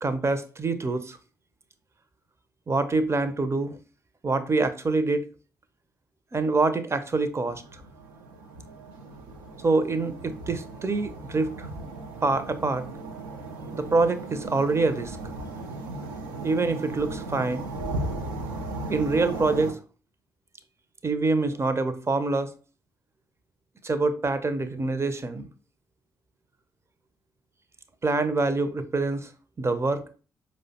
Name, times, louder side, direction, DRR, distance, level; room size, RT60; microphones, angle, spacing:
voice 1, 0.0-1.2 2.7-3.8 4.2-5.2 6.3-7.6 9.6-11.7 12.2-12.9 13.7-15.2 16.4-17.7 18.9-19.8 21.0-22.5 23.8-25.5 28.0-29.3 29.6-30.0, right 3 dB, 30° right, 0.5 m, -25 dB
sound 1, 7.4-19.7, right 2 dB, 85° right, 0.4 m, -36 dB
4.8 x 2.1 x 2.7 m
hypercardioid pair, 40°, 10 cm